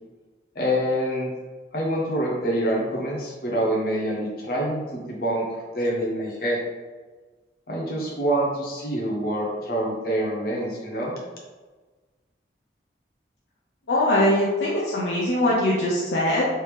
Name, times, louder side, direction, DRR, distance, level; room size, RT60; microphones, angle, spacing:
voice 1, 0.5-1.3 1.7-5.5 5.7-6.6 7.7-11.1, equal, 55° left, -3 dB, 0.9 m, -26 dB
voice 2, 13.9-16.4, left 1 dB, 75° left, -5 dB, 0.5 m, -22 dB
3.3 x 2.7 x 3.2 m, 1.3 s
head